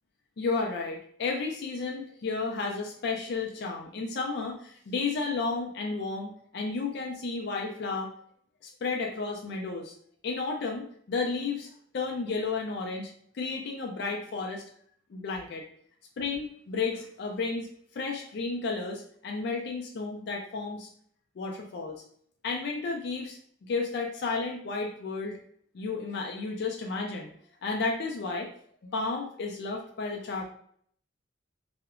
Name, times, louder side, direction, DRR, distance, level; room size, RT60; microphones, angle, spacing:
voice 1, 0.4-8.1 8.6-9.9 10.2-14.6 15.1-15.6 16.2-17.7 17.9-20.9 21.4-21.9 22.4-25.4 25.7-27.3 27.6-28.5 28.9-30.4, left 4 dB, 60° left, 1 dB, 0.4 m, -32 dB
2.7 x 2.1 x 2.4 m, 0.62 s
head